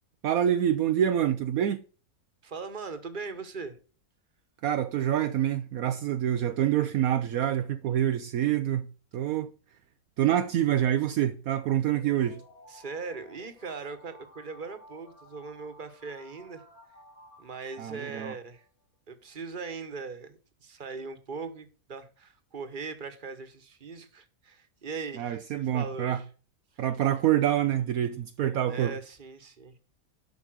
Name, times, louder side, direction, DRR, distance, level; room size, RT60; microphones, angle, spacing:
voice 1, 0.2-1.8 4.6-8.9 9.1-9.5 10.2-12.4 17.8-18.3 25.2-26.2 26.8-28.9, right 11 dB, 70° right, 1.1 m, -26 dB
voice 2, 2.4-3.8 12.7-16.6 17.4-18.6 19.1-26.2 28.7-29.7, right 4 dB, 35° right, 1.4 m, -40 dB
sound 1, 11.9-18.7, left 2 dB, 70° left, 3.7 m, -55 dB
12.0 x 5.3 x 6.2 m
omnidirectional pair, 1.6 m